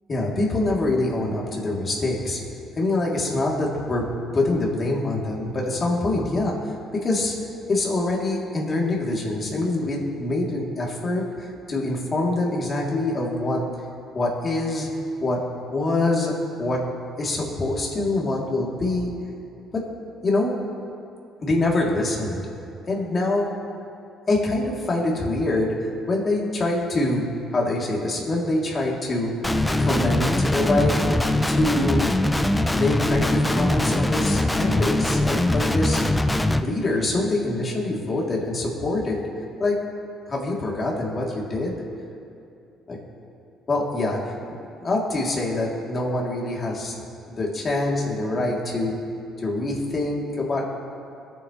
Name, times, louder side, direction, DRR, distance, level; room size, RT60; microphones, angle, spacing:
voice 1, 0.1-2.4 2.8-4.0 4.3-6.6 7.0-7.3 7.7-13.6 14.1-14.9 15.2-15.4 15.7-16.3 16.6-16.8 17.2-19.1 19.7-19.8 20.2-20.5 21.4-22.4 22.9-23.5 24.3-25.7 26.1-27.2 27.5-29.3 29.8-31.1 31.5-32.0 32.7-36.0 36.6-39.2 39.6-39.8 40.3-41.7 42.9-43.0 43.7-47.0 47.3-49.0 49.4-50.7, left 2 dB, 35° left, -3 dB, 3.2 m, -25 dB
Guitar, 29.4-36.6, left 1 dB, 10° left, 0.6 m, -22 dB
22.0 x 9.4 x 3.3 m, 2.6 s
supercardioid pair, 80°, 0 cm